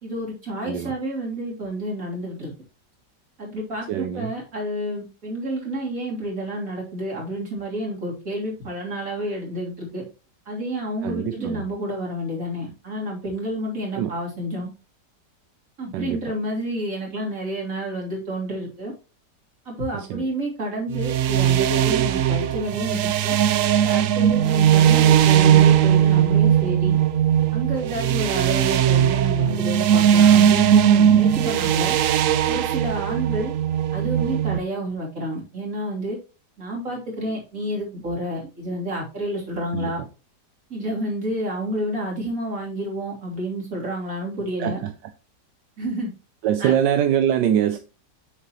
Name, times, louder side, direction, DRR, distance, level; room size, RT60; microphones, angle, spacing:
voice 1, 0.0-2.5 3.4-10.0 10.5-14.7 15.8-18.9 19.7-23.4 23.8-27.0 27.5-31.9 32.5-33.5 33.9-36.2 36.6-40.0 40.7-44.8 45.8-46.1 46.6-46.7, right 1 dB, 50° right, 3.5 m, -29 dB
voice 2, 0.6-0.9 3.9-4.3 11.0-11.6 13.9-14.1 15.9-16.2 19.9-20.3 39.7-39.9 44.6-44.9 46.4-47.8, right 10 dB, 85° right, 1.3 m, -23 dB
sound 1, 20.9-34.6, right 10 dB, 65° right, 0.8 m, -18 dB
8.1 x 6.6 x 3.0 m
omnidirectional pair, 1.9 m